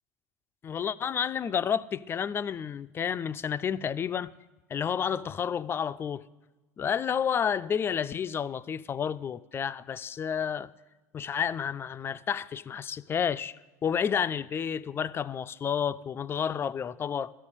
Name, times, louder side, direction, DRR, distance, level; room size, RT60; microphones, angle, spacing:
voice 1, 0.6-4.3 4.7-6.2 6.8-10.7 11.1-17.3, left 7 dB, 25° left, 0.3 m, -30 dB
12.5 x 5.5 x 6.8 m
figure-of-eight pair, 75°, 9 cm